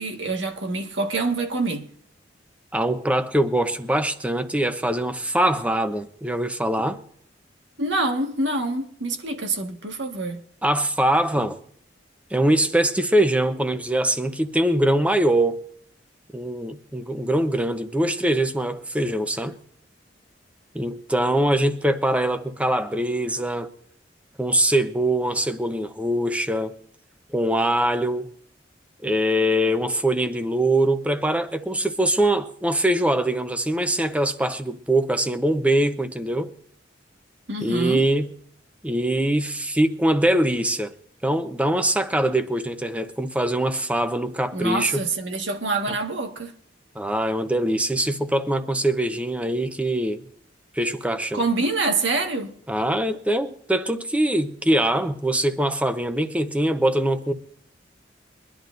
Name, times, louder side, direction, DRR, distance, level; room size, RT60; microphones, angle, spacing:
voice 1, 0.0-1.9 7.8-10.4 37.5-38.1 44.5-46.5 51.3-52.5, right 3 dB, 80° right, 1.7 m, -26 dB
voice 2, 2.7-7.0 10.6-11.6 12.3-15.6 16.3-19.6 20.7-23.7 24.4-26.7 27.3-28.3 29.0-36.5 37.6-38.3 38.8-40.9 41.2-45.0 46.9-50.2 50.7-51.4 52.7-57.3, right 1 dB, 5° right, 0.8 m, -23 dB
23.5 x 11.0 x 2.6 m
head